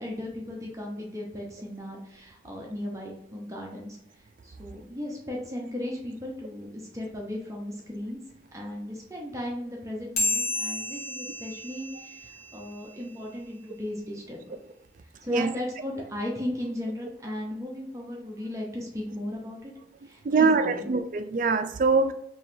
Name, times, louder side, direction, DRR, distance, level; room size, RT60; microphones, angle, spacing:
voice 1, 0.0-8.2 8.5-14.5 15.0-19.7 20.0-20.9, left 1 dB, 15° right, 0.7 m, -36 dB
sound 1, 10.2-13.0, left 2 dB, 35° left, 1.2 m, -32 dB
voice 2, 20.2-22.1, right 4 dB, 45° right, 0.3 m, -23 dB
4.7 x 3.0 x 2.6 m
head